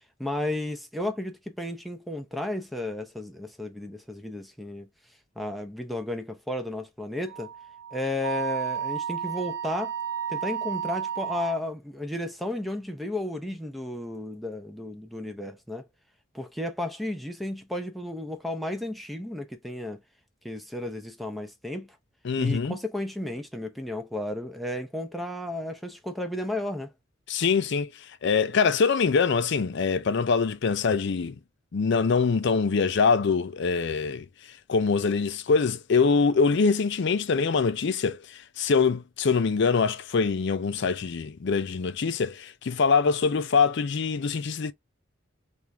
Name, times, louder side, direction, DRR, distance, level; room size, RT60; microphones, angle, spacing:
voice 1, 0.2-4.9 5.4-7.5 7.9-9.9 10.3-15.8 16.3-20.0 20.4-22.0 22.4-26.9, left 1 dB, ahead, 0.6 m, -33 dB
Wind instrument woodwind instrument, 7.3-11.6, right 8 dB, 60° right, 1.1 m, -32 dB
voice 2, 22.2-22.8 27.3-27.9 28.2-31.4 31.7-34.3 34.7-44.7, left 5 dB, 55° left, 0.4 m, -24 dB
3.0 x 2.6 x 3.4 m
head